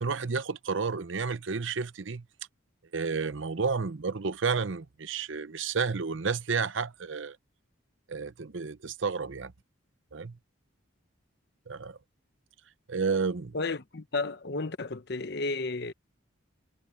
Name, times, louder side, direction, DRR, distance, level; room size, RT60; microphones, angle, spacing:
voice 1, 0.0-2.2 2.9-7.4 8.1-9.5 10.1-10.4 11.7-12.0 12.9-13.5, right 5 dB, 70° right, 0.8 m, -31 dB
voice 2, 13.5-15.9, left 3 dB, 55° left, 0.9 m, -32 dB
head